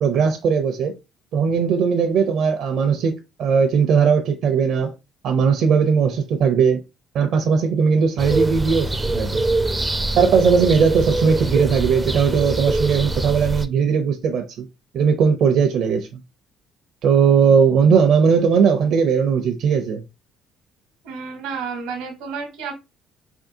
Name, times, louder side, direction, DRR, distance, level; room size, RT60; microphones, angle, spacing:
voice 1, 0.0-0.9 1.3-4.9 5.2-6.8 7.1-9.4 10.2-14.7 14.9-16.2 17.0-20.0, right 6 dB, 65° right, 0.5 m, -18 dB
sound 1, 8.2-13.7, right 2 dB, 15° right, 0.4 m, -24 dB
voice 2, 21.0-22.7, right 5 dB, 90° right, 0.9 m, -31 dB
3.5 x 2.3 x 2.7 m
cardioid pair, 95°, 0 cm